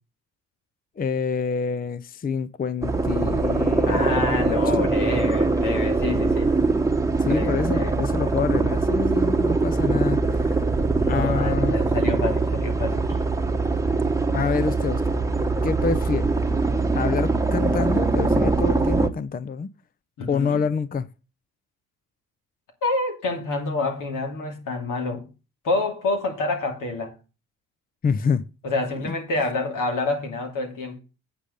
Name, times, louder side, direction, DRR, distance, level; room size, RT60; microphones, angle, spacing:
voice 1, 1.0-4.2 4.4-4.9 7.2-10.7 11.0-11.8 14.3-15.2 15.6-16.3 16.9-19.7 20.3-21.1 28.0-28.4 29.0-29.2, left 5 dB, 30° left, 0.5 m, -27 dB
sound 1, 2.8-19.1, right 3 dB, 10° right, 1.0 m, -22 dB
voice 2, 3.8-6.5 7.2-8.0 11.0-13.2 20.2-20.6 22.8-25.3 25.6-27.1 28.6-31.0, left 3 dB, 75° left, 2.7 m, -27 dB
8.9 x 5.1 x 6.7 m
cardioid pair, 70°, 32 cm